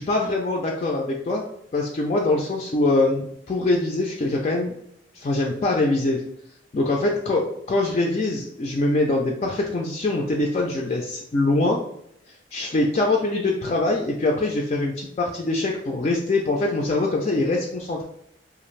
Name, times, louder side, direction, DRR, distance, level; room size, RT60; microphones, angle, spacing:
voice 1, 0.0-1.4 1.7-4.7 5.1-6.2 6.7-11.8 12.5-18.0, left 2 dB, 35° left, 0 dB, 0.3 m, -23 dB
2.5 x 2.4 x 3.1 m, 0.72 s
head